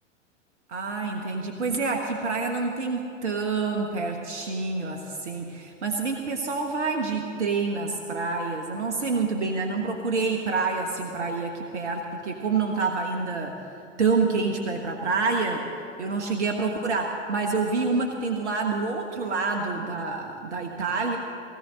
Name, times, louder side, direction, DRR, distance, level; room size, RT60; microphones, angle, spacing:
voice 1, 0.7-13.6 14.0-15.7 16.0-21.2, right 4 dB, 65° right, 3 dB, 1.3 m, -27 dB
18.5 x 17.0 x 3.8 m, 2.5 s
figure-of-eight pair, 95°, 37 cm